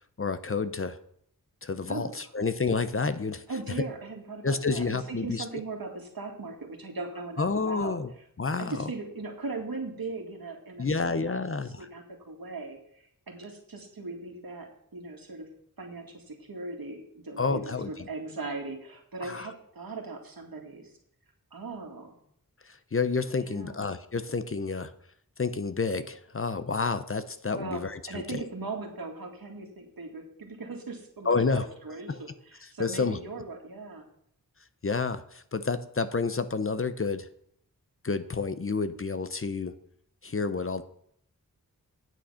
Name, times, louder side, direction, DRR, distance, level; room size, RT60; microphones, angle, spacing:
voice 1, 0.2-1.0 1.6-3.4 4.4-5.4 7.4-8.1 8.4-8.9 10.8-11.9 17.4-18.1 19.2-19.5 22.7-24.9 25.4-28.5 31.2-31.7 32.1-32.2 32.6-33.2 34.8-37.3 38.0-39.7 40.2-40.8, left 4 dB, 40° left, 12 dB, 0.7 m, -29 dB
voice 2, 3.5-8.0 8.6-15.5 15.8-20.9 21.5-22.2 23.3-23.8 27.5-27.8 28.1-34.0, right 3 dB, 80° right, 2 dB, 2.2 m, -39 dB
9.1 x 8.6 x 5.7 m, 0.69 s
wide cardioid pair, 85°, 35 cm